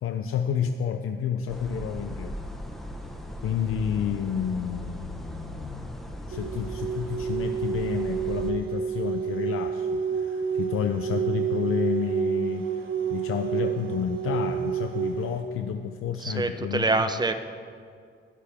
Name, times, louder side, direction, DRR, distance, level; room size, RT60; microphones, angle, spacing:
voice 1, 0.0-2.4 3.4-6.0 6.3-16.9, left 8 dB, 85° left, 6 dB, 0.7 m, -30 dB
sound 1, 1.5-8.5, equal, ahead, 1.3 m, -38 dB
sound 2, 6.3-15.4, right 7 dB, 70° right, 1.4 m, -29 dB
voice 2, 16.2-17.3, right 2 dB, 20° right, 9 dB, 0.9 m, -25 dB
22.0 x 11.5 x 3.6 m, 2.2 s
cardioid pair, 105°, 21 cm